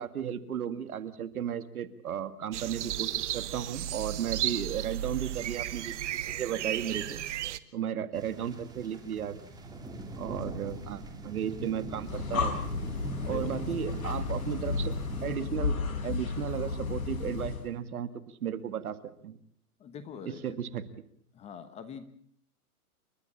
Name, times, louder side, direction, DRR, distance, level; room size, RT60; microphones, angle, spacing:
voice 1, 0.0-5.9 6.3-7.2 7.7-9.5 10.2-12.7 13.3-14.9 15.2-15.8 16.0-18.1 18.4-19.0 19.2-19.4 20.3-20.8, right 9 dB, 65° right, 12 dB, 2.0 m, -34 dB
sound 1, 2.5-7.6, right 12 dB, 50° right, 1.2 m, -34 dB
voice 2, 4.3-4.7 13.2-13.9 19.8-20.6 21.3-22.0, left 7 dB, 15° left, 11 dB, 1.1 m, -45 dB
sound 2, 8.1-15.4, right 2 dB, 10° right, 2.8 m, -41 dB
Breathing, 11.9-17.7, left 4 dB, 60° left, 5.1 m, -33 dB
29.0 x 12.5 x 8.5 m, 0.63 s
hypercardioid pair, 145°, 46 cm